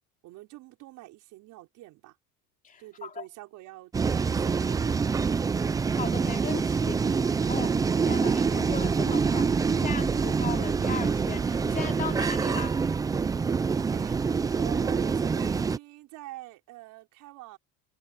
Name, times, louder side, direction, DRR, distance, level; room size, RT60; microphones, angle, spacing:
voice 1, 0.2-2.2 2.8-5.1 13.6-14.2 14.6-17.6, right 17 dB, 55° right, 5.1 m, -46 dB
voice 2, 2.6-3.3 6.0-7.2 7.5-12.8, left 6 dB, 20° left, 2.7 m, -38 dB
sound 1, 3.9-15.8, right 5 dB, 10° right, 0.4 m, -26 dB
cardioid pair, 155°, 37 cm